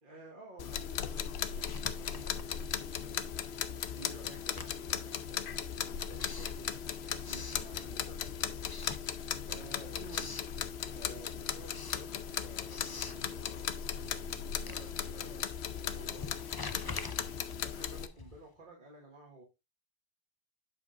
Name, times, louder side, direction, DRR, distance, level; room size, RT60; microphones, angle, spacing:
voice 1, 0.0-9.2 9.5-10.3 10.9-19.4, right 2 dB, 50° right, 1.8 m, -53 dB
sound 1, 0.6-18.1, left 8 dB, 80° left, 0.9 m, -37 dB
Writing, 1.5-3.1 3.4-8.2 8.6-9.6 9.9-10.5 11.0-18.6, left 4 dB, 30° left, 0.5 m, -48 dB
8.2 x 7.1 x 2.5 m
omnidirectional pair, 1.1 m